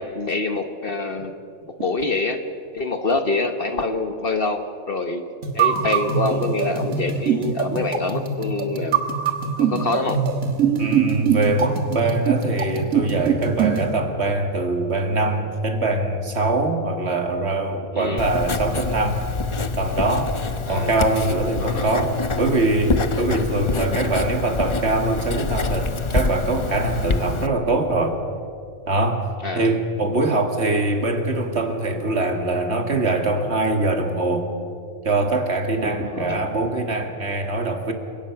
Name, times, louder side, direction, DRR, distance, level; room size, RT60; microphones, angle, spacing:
voice 1, 0.0-1.3 1.7-2.4 2.7-5.2 5.5-9.0 9.6-10.2 17.9-18.3 20.7-21.0 21.6-21.9 29.4-29.8 36.0-36.4, left 3 dB, 45° left, 7 dB, 1.2 m, -25 dB
sound 1, 5.4-13.9, right 7 dB, 75° right, 1.8 m, -23 dB
voice 2, 10.8-19.2 19.8-20.3 20.7-28.2 28.9-29.3 29.5-34.5 35.0-37.9, right 2 dB, 50° right, 5 dB, 2.1 m, -23 dB
Writing, 18.2-27.5, left 4 dB, 30° left, 0.6 m, -26 dB
27.5 x 17.0 x 5.8 m, 2.4 s
omnidirectional pair, 1.4 m